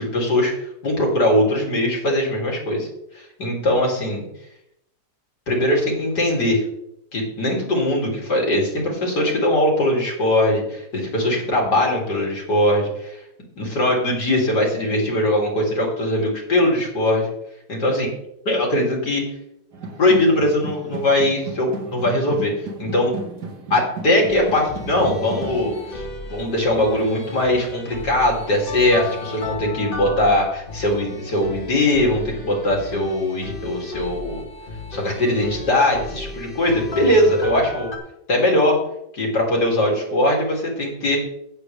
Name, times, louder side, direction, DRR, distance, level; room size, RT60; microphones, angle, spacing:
voice 1, 0.0-2.9 3.1-4.2 5.5-6.6 7.1-13.2 13.6-17.3 17.7-18.1 18.5-19.2 20.0-22.5 22.8-23.1 23.7-34.4 34.9-37.9 38.3-38.8 39.1-41.2, left 1 dB, 80° left, -1 dB, 3.5 m, -20 dB
sound 1, 19.7-28.6, right 3 dB, 75° right, 2.3 m, -36 dB
sound 2, 24.3-38.0, left 2 dB, 35° left, 1.5 m, -34 dB
16.0 x 7.0 x 3.4 m, 0.80 s
omnidirectional pair, 1.8 m